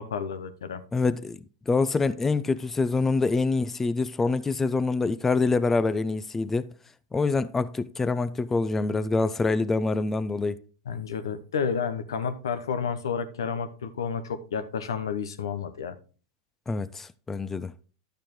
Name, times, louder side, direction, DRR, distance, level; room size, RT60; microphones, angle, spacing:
voice 1, 0.0-0.8 10.9-15.9, left 6 dB, 85° left, 0.9 m, -31 dB
voice 2, 0.9-1.4 1.7-6.7 7.1-10.6 16.7-17.7, left 3 dB, 15° left, 0.4 m, -25 dB
11.0 x 6.7 x 3.1 m
hypercardioid pair, 115°, 2 cm